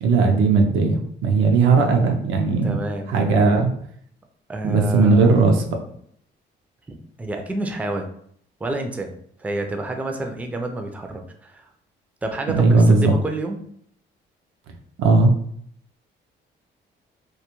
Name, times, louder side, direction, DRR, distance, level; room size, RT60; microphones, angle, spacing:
voice 1, 0.0-2.8 3.1-3.7 4.6-5.6 12.5-13.1 15.0-15.3, right 4 dB, 80° right, 3 dB, 0.5 m, -17 dB
voice 2, 2.6-3.5 4.5-5.3 6.9-8.1 8.6-11.7 12.2-13.6, right 2 dB, 5° right, 4 dB, 0.3 m, -29 dB
2.2 x 2.2 x 2.9 m, 0.66 s
cardioid pair, 90°, 20 cm